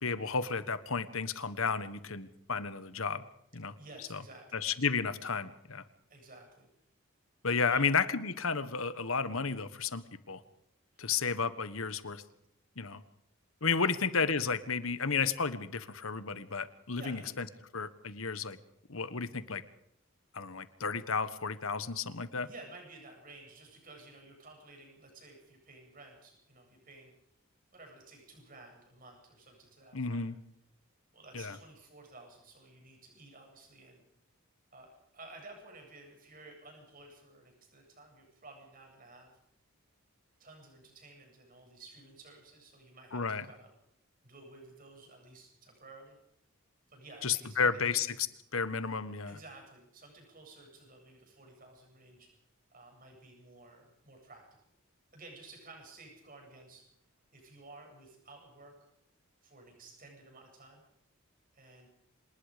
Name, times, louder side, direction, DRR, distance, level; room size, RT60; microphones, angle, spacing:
voice 1, 0.0-3.2 3.5-3.7 4.1-4.2 4.6-5.8 7.4-10.4 11.0-12.2 12.8-13.0 13.6-17.4 17.7-18.6 18.9-19.6 20.3-22.5 29.9-30.3 31.3-31.6 43.1-43.4 47.2-48.3 48.5-49.4, left 5 dB, 75° left, 13 dB, 1.4 m, -32 dB
voice 2, 3.8-4.7 6.1-6.7 7.5-7.9 10.9-11.2 13.8-13.9 17.0-17.4 22.4-27.1 27.7-30.2 31.1-34.0 34.7-39.4 40.4-43.7 44.2-46.2 46.9-48.0 49.3-52.3 52.7-54.5 55.1-56.9 57.3-58.7 59.4-60.8 61.5-61.9, right 2 dB, 40° right, 2 dB, 8.0 m, -53 dB
26.5 x 20.0 x 5.2 m, 0.74 s
head